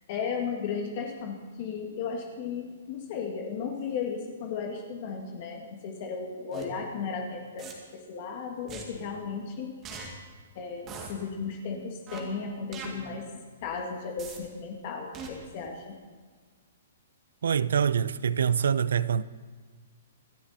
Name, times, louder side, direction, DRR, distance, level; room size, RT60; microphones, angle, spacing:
voice 1, 0.0-9.8 10.6-15.9, left 5 dB, 35° left, 1.9 m, -35 dB
sound 1, 6.5-6.6 7.6-7.7 8.7-8.8 9.8-10.1 10.9-11.1 12.1-12.2 12.7-12.9 14.2-14.4 15.1-15.3, right 6 dB, 20° right, 2.1 m, -40 dB
voice 2, 17.4-19.2, right 7 dB, 80° right, 0.7 m, -25 dB
26.5 x 12.0 x 4.3 m
hypercardioid pair, 170°, 0 cm